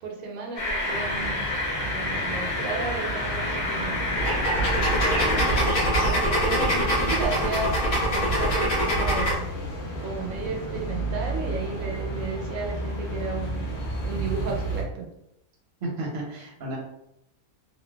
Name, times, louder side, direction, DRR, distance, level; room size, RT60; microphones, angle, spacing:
voice 1, 0.0-1.5 1.8-3.9 4.6-5.8 6.0-7.7 8.1-9.4 10.0-13.7 14.0-15.1, right 4 dB, 75° right, 0 dB, 1.0 m, -34 dB
sound 1, 0.6-5.6, left 2 dB, 45° left, 0.6 m, -29 dB
sound 2, 0.9-14.8, right 1 dB, 90° left, 1.1 m, -32 dB
sound 3, 4.2-9.4, equal, 75° left, 1.4 m, -24 dB
voice 2, 15.8-16.8, right 1 dB, 50° right, -2 dB, 0.7 m, -32 dB
3.0 x 2.2 x 2.2 m, 0.80 s
omnidirectional pair, 1.5 m